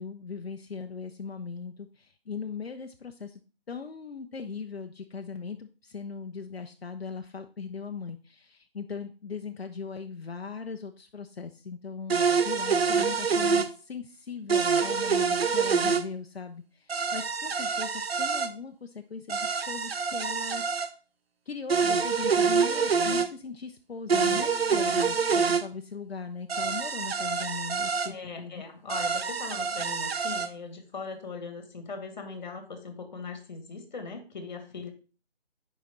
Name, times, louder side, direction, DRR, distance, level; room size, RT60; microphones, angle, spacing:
voice 1, 0.0-3.4 3.7-12.2 12.4-20.9 21.5-28.6, left 5 dB, 80° left, 6 dB, 0.7 m, -39 dB
sound 1, 12.1-13.7 14.5-16.0 16.9-18.5 19.3-20.9 21.7-23.3 24.1-25.6 26.5-28.1 28.9-30.5, right 5 dB, 75° right, 0.7 m, -26 dB
voice 2, 28.0-34.9, left 4 dB, 45° left, 7 dB, 1.4 m, -40 dB
6.1 x 5.0 x 4.2 m, 0.36 s
figure-of-eight pair, 150°, 31 cm